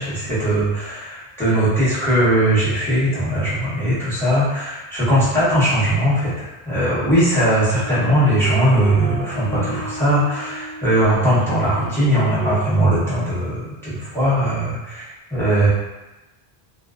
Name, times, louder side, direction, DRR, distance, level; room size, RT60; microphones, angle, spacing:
voice 1, 0.0-15.7, right 1 dB, 5° left, -12 dB, 1.1 m, -19 dB
sound 1, 7.8-12.6, left 2 dB, 25° right, 1.0 m, -34 dB
2.4 x 2.2 x 2.4 m, 1.1 s
omnidirectional pair, 1.1 m